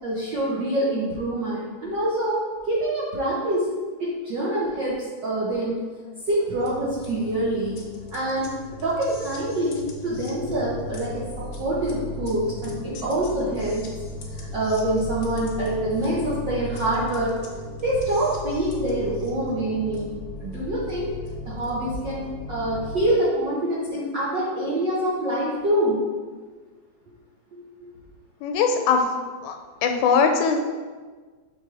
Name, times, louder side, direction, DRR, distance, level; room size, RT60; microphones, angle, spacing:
voice 1, 0.0-2.4 2.7-3.7 4.0-5.8 6.2-7.8 8.1-13.9 14.3-17.4 17.8-20.1 20.4-21.1 21.4-26.0, right 1 dB, 80° right, -7 dB, 1.0 m, -25 dB
sound 1, 6.6-23.1, left 2 dB, 70° left, 1.3 m, -36 dB
voice 2, 28.4-29.1 29.4-30.6, left 5 dB, 85° left, 5 dB, 2.0 m, -21 dB
5.8 x 3.5 x 4.7 m, 1.4 s
omnidirectional pair, 3.3 m